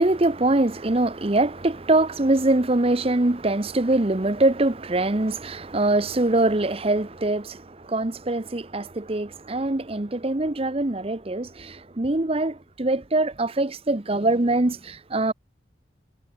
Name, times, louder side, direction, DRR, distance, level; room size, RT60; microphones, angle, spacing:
voice 1, 0.0-15.3, right 2 dB, 30° right, 0.9 m, -23 dB
head